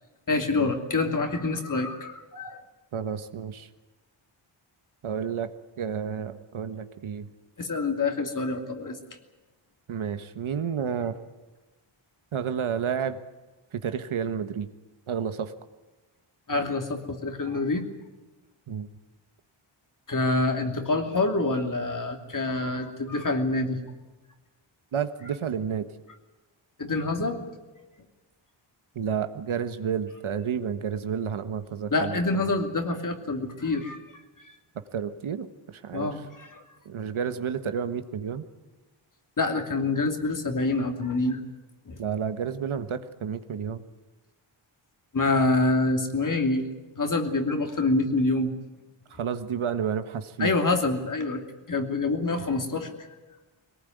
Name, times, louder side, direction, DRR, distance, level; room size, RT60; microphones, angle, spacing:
voice 1, 0.3-2.6 7.6-9.0 16.5-17.9 20.1-23.8 26.8-27.4 31.9-34.0 34.4-34.5 35.9-36.6 39.4-41.4 41.9-42.0 45.1-46.7 46.9-48.5 50.4-51.4 51.7-53.0, left 2 dB, 40° left, 5 dB, 2.9 m, -26 dB
voice 2, 2.9-3.7 5.0-5.5 5.8-7.3 9.9-11.2 12.3-13.2 13.7-14.7 15.1-15.5 18.7-18.9 24.9-25.8 28.9-32.6 34.9-36.2 36.8-38.4 42.0-43.8 49.1-50.5, right 7 dB, 70° right, 10 dB, 1.5 m, -31 dB
22.0 x 19.0 x 9.4 m, 1.2 s
wide cardioid pair, 110°, 50 cm